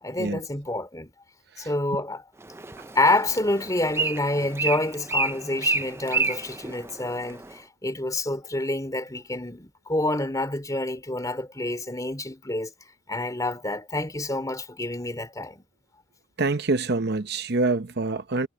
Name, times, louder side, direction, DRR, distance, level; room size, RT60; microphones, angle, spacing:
voice 1, 0.0-1.1 1.6-2.3 3.0-12.7 13.1-15.6, left 2 dB, 15° left, 3.6 m, -28 dB
Bird, 2.4-7.5, right 3 dB, 10° right, 0.5 m, -30 dB
voice 2, 16.4-18.5, right 3 dB, 50° right, 0.8 m, -25 dB
head